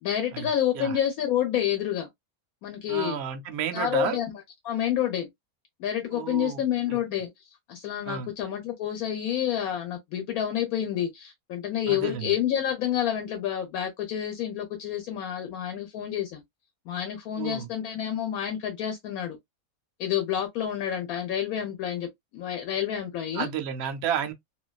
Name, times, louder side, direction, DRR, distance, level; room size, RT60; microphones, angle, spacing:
voice 1, 0.0-2.1 2.6-3.2 3.7-4.3 4.6-5.3 5.8-7.3 7.7-16.4 16.9-19.4 20.0-23.5, left 10 dB, 75° left, 1.1 m, -29 dB
voice 2, 2.9-4.2 6.1-6.6 6.9-7.0 8.1-8.3 11.9-12.3 17.4-17.7 23.3-24.3, right 8 dB, 65° right, 0.6 m, -31 dB
2.5 x 2.3 x 2.2 m
omnidirectional pair, 1.5 m